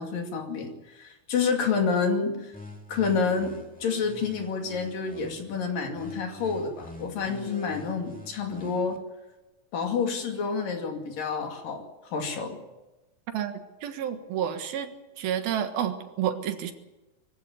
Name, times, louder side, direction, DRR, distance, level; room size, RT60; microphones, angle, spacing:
voice 1, 0.0-2.5 2.9-3.6 3.8-9.0 9.7-11.8 12.1-12.6, left 5 dB, 65° left, 3 dB, 4.0 m, -28 dB
sound 1, 2.5-5.5 6.0-9.0, left 2 dB, 5° left, 1.2 m, -46 dB
voice 2, 13.8-16.7, right 9 dB, 75° right, 7 dB, 3.3 m, -30 dB
23.5 x 15.5 x 9.4 m, 1.1 s
omnidirectional pair, 4.4 m